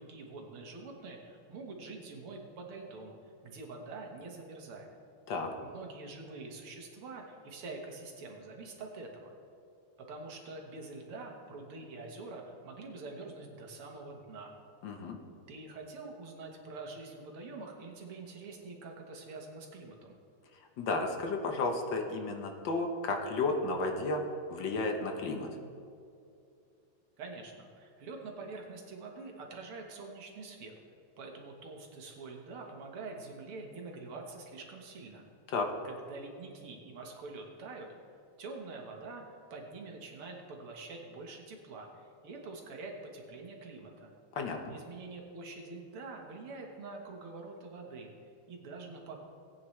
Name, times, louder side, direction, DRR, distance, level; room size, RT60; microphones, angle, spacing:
voice 1, 0.0-4.9 5.6-9.3 10.1-14.5 15.5-20.2 27.2-30.7 31.2-35.3 35.8-37.9 38.4-44.1 44.7-48.1 48.5-49.2, right 3 dB, 85° right, 1 dB, 2.3 m, -45 dB
voice 2, 14.8-15.2 20.8-24.2 24.5-25.5 35.5-35.7 44.3-44.6, left 3 dB, 65° left, 3 dB, 1.6 m, -32 dB
18.0 x 9.1 x 3.2 m, 2.5 s
omnidirectional pair, 2.3 m